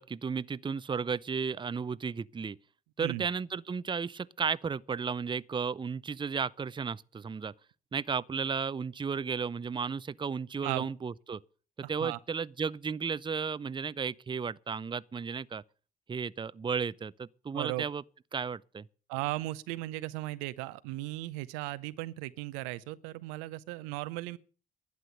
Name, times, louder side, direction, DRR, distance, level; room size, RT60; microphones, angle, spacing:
voice 1, 0.0-2.6 3.0-7.5 7.9-11.4 11.9-15.6 16.1-18.0 18.3-18.8, right 6 dB, 25° right, 0.6 m, -34 dB
voice 2, 17.5-17.8 19.1-24.4, right 18 dB, 80° right, 0.6 m, -36 dB
11.5 x 10.5 x 8.1 m
hypercardioid pair, 45°, 18 cm